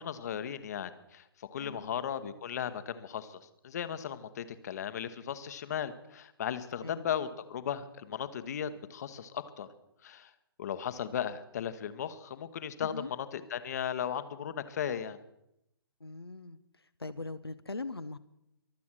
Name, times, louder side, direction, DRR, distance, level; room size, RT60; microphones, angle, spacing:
voice 1, 0.0-9.7 10.0-10.3 10.6-15.2, left 9 dB, 45° left, 12 dB, 1.1 m, -36 dB
voice 2, 12.8-13.1 16.0-16.6 17.0-18.2, left 3 dB, 85° left, 10 dB, 0.8 m, -40 dB
23.5 x 8.5 x 6.2 m, 0.82 s
figure-of-eight pair, 130°, 13 cm